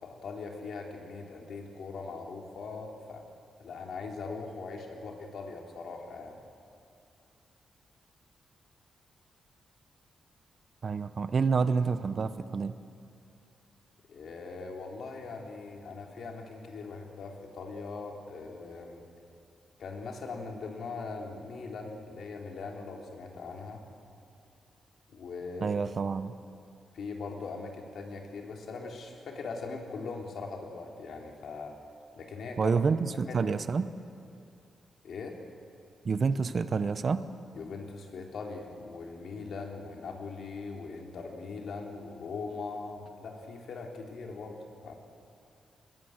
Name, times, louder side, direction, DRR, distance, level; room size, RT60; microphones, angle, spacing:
voice 1, 0.0-3.2 3.6-6.4 14.1-19.0 19.8-23.8 25.1-25.8 26.9-31.8 32.1-32.7 33.1-33.5 35.0-35.4 37.5-45.0, left 4 dB, 70° left, 2 dB, 3.4 m, -41 dB
voice 2, 10.8-12.8 25.6-26.3 32.6-33.9 36.0-37.3, right 5 dB, 40° right, 12 dB, 0.9 m, -28 dB
22.5 x 21.0 x 8.9 m, 2.5 s
wide cardioid pair, 130°, 0 cm